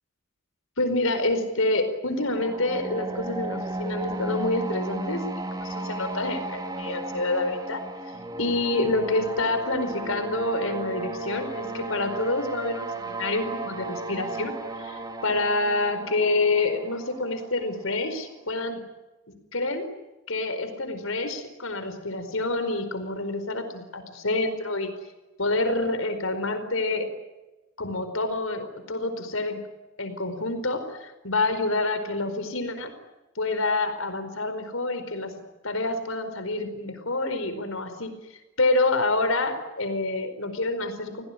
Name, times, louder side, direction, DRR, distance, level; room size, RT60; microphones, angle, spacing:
voice 1, 0.8-7.8 8.4-18.8 19.3-19.9 20.3-24.9 25.4-27.1 27.8-29.6 30.0-32.9 33.4-35.3 35.6-38.1 38.6-41.2, left 2 dB, 75° left, 8 dB, 4.7 m, -27 dB
sound 1, 2.2-18.0, right 2 dB, 20° right, 2.4 m, -34 dB
29.0 x 18.5 x 9.9 m, 1.1 s
head